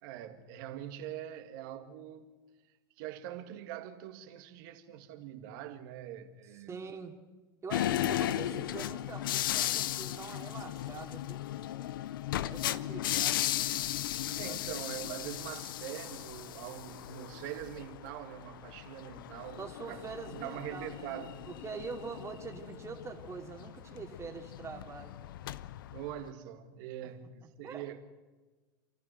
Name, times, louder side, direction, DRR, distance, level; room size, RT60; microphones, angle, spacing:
voice 1, 0.0-2.3 3.0-6.8 8.5-8.9 14.4-21.5 25.9-28.0, right 11 dB, 65° right, 2.3 m, -43 dB
voice 2, 6.7-7.2 7.6-11.5 12.5-13.5 14.4-14.6 19.6-25.2 27.6-27.8, right 5 dB, 25° right, 2.7 m, -44 dB
sound 1, 7.7-26.3, left 13 dB, 80° left, 0.6 m, -36 dB
29.0 x 14.0 x 7.8 m
hypercardioid pair, 90°, 11 cm